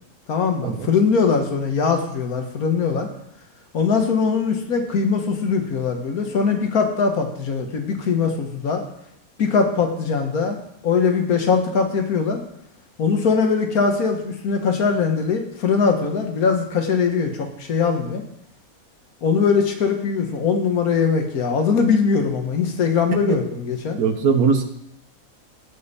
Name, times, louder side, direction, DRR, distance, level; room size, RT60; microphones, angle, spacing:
voice 1, 0.3-3.1 3.7-8.8 9.4-10.6 10.8-12.4 13.0-18.2 19.2-24.0, left 5 dB, 80° left, 4 dB, 1.7 m, -21 dB
voice 2, 24.0-24.6, right 5 dB, 80° right, 7 dB, 1.5 m, -20 dB
16.0 x 5.3 x 4.2 m, 0.76 s
omnidirectional pair, 1.5 m